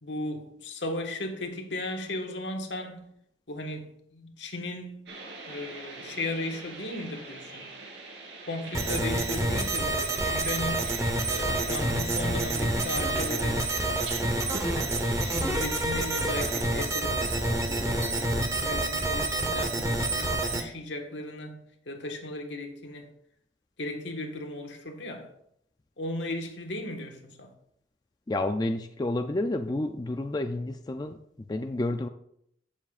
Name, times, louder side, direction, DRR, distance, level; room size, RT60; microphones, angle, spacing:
voice 1, 0.0-3.1 3.5-5.1 5.5-7.7 8.4-11.0 11.3-13.6 14.6-21.6 21.8-23.1 23.8-25.3 26.0-27.5, left 1 dB, 75° left, 1.5 m, -36 dB
sound 1, 5.1-16.6, right 3 dB, 75° right, 2.9 m, -43 dB
sound 2, 8.7-20.6, right 2 dB, 15° right, 0.9 m, -28 dB
voice 2, 28.3-32.1, left 2 dB, 20° left, 0.4 m, -30 dB
15.5 x 7.2 x 2.4 m
head